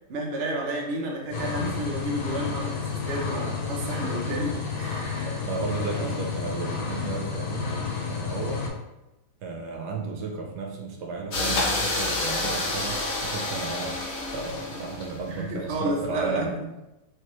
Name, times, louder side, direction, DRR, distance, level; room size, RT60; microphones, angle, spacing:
voice 1, 0.1-5.3 5.9-6.1 15.3-16.5, right 1 dB, 85° right, -1 dB, 0.5 m, -31 dB
sound 1, 1.3-8.7, left 5 dB, 80° left, 1.5 m, -31 dB
voice 2, 5.3-8.8 9.4-14.0 14.3-16.5, right 4 dB, 70° right, 2 dB, 1.1 m, -33 dB
sound 2, 11.3-15.4, left 2 dB, 55° left, 1.0 m, -28 dB
3.3 x 3.2 x 3.0 m, 0.97 s
omnidirectional pair, 2.1 m